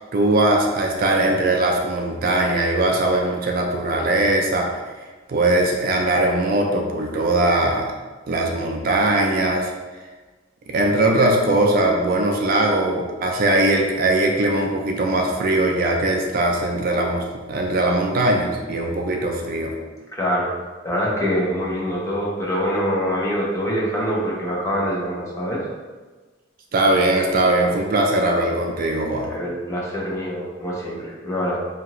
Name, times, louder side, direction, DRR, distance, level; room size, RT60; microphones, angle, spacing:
voice 1, 0.1-4.7 5.3-7.9 8.3-9.7 10.7-19.7 26.7-29.3, right 2 dB, 50° right, 1 dB, 0.3 m, -20 dB
voice 2, 20.1-20.5 20.8-25.6 29.3-31.6, equal, 15° left, -5 dB, 0.6 m, -24 dB
2.8 x 2.4 x 2.9 m, 1.3 s
head